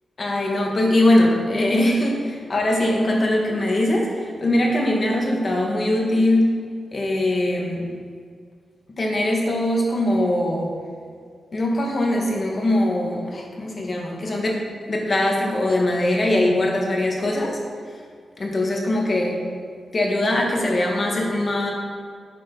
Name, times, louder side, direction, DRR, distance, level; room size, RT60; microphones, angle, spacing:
voice 1, 0.2-6.5 6.9-7.9 9.0-10.7 11.5-17.6 18.4-19.4 19.9-21.7, left 1 dB, 35° left, -1 dB, 1.6 m, -21 dB
9.1 x 6.1 x 5.4 m, 2.1 s
wide cardioid pair, 130°, 0 cm